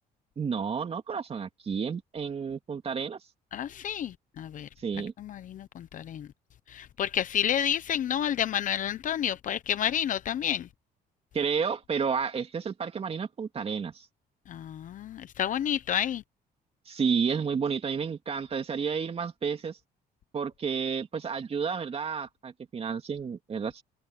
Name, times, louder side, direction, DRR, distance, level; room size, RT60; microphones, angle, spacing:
voice 1, 0.4-3.2 4.8-5.1 11.3-14.1 16.9-19.8 20.3-23.8, right 6 dB, 35° right, 2.7 m, -31 dB
voice 2, 3.5-4.7 5.2-6.3 6.7-10.7 14.5-16.2, left 9 dB, 50° left, 0.8 m, -30 dB
cardioid pair, 110°, 17 cm